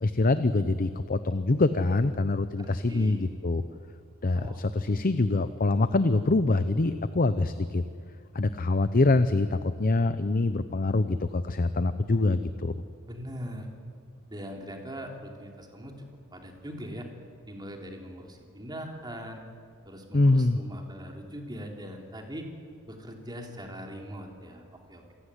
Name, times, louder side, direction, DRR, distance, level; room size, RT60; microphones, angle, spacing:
voice 1, 0.0-3.6 4.2-7.8 8.3-12.7 20.1-20.6, left 2 dB, 40° left, 11 dB, 0.7 m, -25 dB
voice 2, 2.6-3.3 4.4-4.6 4.8-5.1 13.1-13.7 14.3-17.1 17.5-19.4 19.8-22.5 22.9-25.1, equal, 20° right, 2 dB, 3.3 m, -41 dB
27.5 x 16.5 x 9.9 m, 2.2 s
head